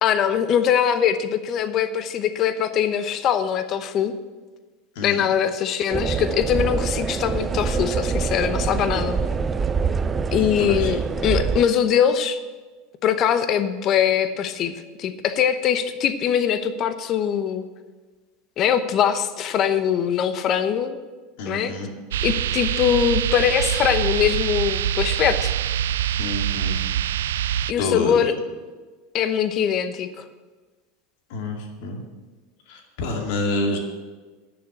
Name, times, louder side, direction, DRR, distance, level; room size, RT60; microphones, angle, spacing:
voice 1, 0.0-4.1 5.0-9.2 10.3-12.4 13.0-14.7 15.0-17.6 18.6-21.0 21.5-21.7 22.2-25.5 27.7-28.3 29.1-30.1, left 8 dB, 45° left, 11 dB, 0.9 m, -22 dB
sound 1, 5.9-11.6, right 5 dB, 25° right, 0.5 m, -25 dB
voice 2, 10.4-10.9 21.4-21.9 26.2-26.8 27.8-28.3 31.3-32.0 32.7-33.8, left 2 dB, 70° left, 2 dB, 2.3 m, -27 dB
sound 2, 22.1-27.7, right 11 dB, 85° right, 0.3 m, -24 dB
9.8 x 7.0 x 8.2 m, 1.3 s
hypercardioid pair, 100°, 0 cm